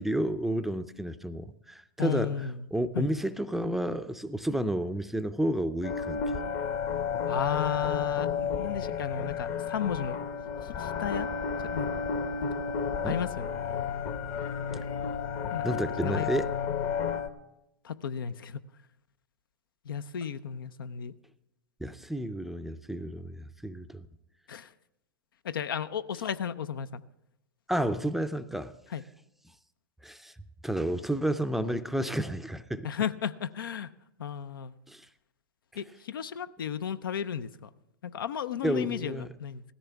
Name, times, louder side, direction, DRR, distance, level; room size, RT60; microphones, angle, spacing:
voice 1, 0.0-6.2 13.0-13.2 15.6-16.5 21.8-24.1 27.7-28.7 30.0-30.3 30.6-32.9 34.9-35.1 38.6-39.3, right 1 dB, ahead, 0.5 m, -31 dB
voice 2, 2.0-2.6 2.9-3.1 7.3-10.2 10.6-11.3 11.7-11.9 12.4-12.5 13.0-13.9 15.5-15.6 16.0-16.3 17.8-18.6 19.9-21.1 24.5-24.7 25.4-27.0 28.9-29.0 32.8-33.9 34.2-34.7 35.8-37.7 38.0-39.6, left 8 dB, 80° left, 0.5 m, -34 dB
sound 1, 5.8-17.3, left 6 dB, 40° left, 1.0 m, -32 dB
16.5 x 14.0 x 3.4 m
hypercardioid pair, 110°, 11 cm